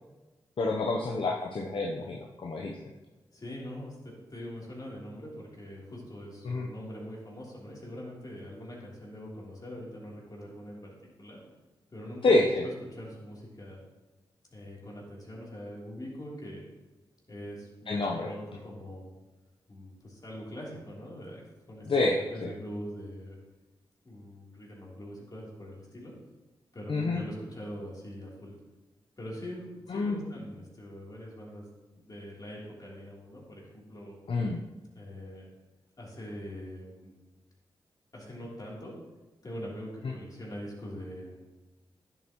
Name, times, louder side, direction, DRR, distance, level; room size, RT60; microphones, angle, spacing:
voice 1, 0.6-2.8 6.4-6.7 12.2-12.6 17.9-18.3 21.9-22.5 26.9-27.2 29.9-30.2 34.3-34.6 40.0-40.1, left 2 dB, 60° left, 1 dB, 0.8 m, -28 dB
voice 2, 3.3-11.4 11.9-12.4 12.9-13.8 14.5-16.6 17.3-19.1 19.7-21.4 21.7-23.4 24.0-26.1 26.7-28.5 29.2-31.7 32.0-34.2 34.9-35.5 36.0-37.1 38.1-38.9 39.4-41.5, equal, 40° left, -4 dB, 3.2 m, -43 dB
10.0 x 7.9 x 3.0 m, 1.2 s
cardioid pair, 45°, 10 cm